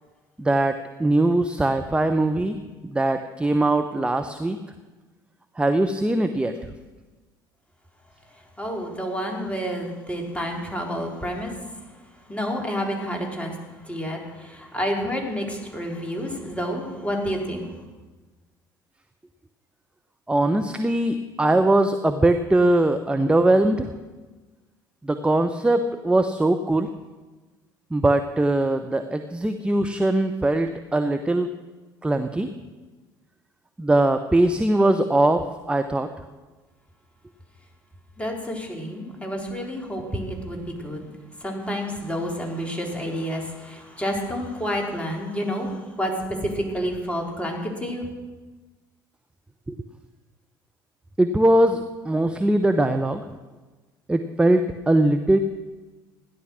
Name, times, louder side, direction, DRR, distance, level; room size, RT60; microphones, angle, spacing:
voice 1, 0.4-2.6 2.8-4.6 5.6-6.5 20.3-23.9 25.0-26.9 27.9-31.5 32.0-32.5 33.8-35.4 35.7-36.1 49.7-49.8 51.2-53.2 54.1-55.4, right 1 dB, 10° right, 8 dB, 0.8 m, -21 dB
voice 2, 8.6-11.5 12.3-13.5 13.9-17.7 38.2-41.1 41.4-46.1 46.4-48.1, equal, 10° left, 1 dB, 3.8 m, -29 dB
16.0 x 11.0 x 6.4 m, 1.3 s
figure-of-eight pair, 60°, 11 cm